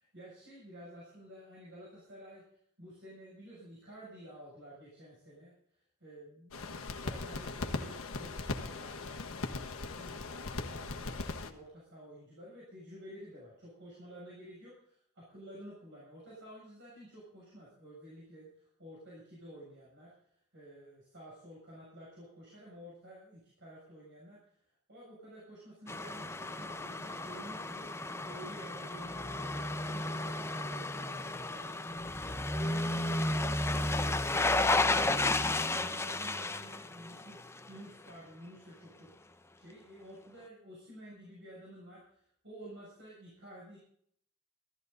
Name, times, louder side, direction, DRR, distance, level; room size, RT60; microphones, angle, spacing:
voice 1, 0.0-2.4 2.8-32.1 32.6-39.1 39.5-43.8, equal, 55° right, -7 dB, 7.1 m, -52 dB
sound 1, 6.5-11.5, left 3 dB, 65° left, 1.4 m, -39 dB
sound 2, 25.9-37.8 38.1-38.2, left 2 dB, 10° left, 0.7 m, -33 dB
16.5 x 14.0 x 4.0 m, 0.65 s
head